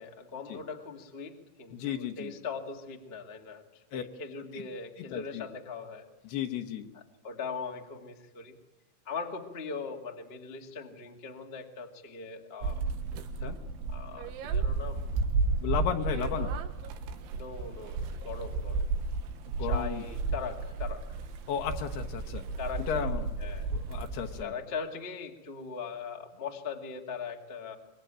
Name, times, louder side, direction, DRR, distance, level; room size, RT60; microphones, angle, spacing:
voice 1, 0.0-6.0 6.9-8.5 9.0-12.9 13.9-15.1 16.3-16.6 17.3-18.9 19.6-21.0 22.6-23.1 23.4-23.7 24.4-27.7, left 5 dB, 35° left, 2 dB, 0.9 m, -40 dB
voice 2, 1.7-2.3 3.9-4.0 4.5-4.6 5.0-5.5 6.2-6.9 13.4-13.6 15.6-16.5 19.6-20.0 21.5-22.5 22.9-23.3 23.7-24.5, left 9 dB, 70° left, 5 dB, 2.9 m, -34 dB
sound 1, 12.6-24.4, right 4 dB, 85° right, 3.9 m, -33 dB
24.5 x 22.0 x 9.0 m, 1.0 s
omnidirectional pair, 5.3 m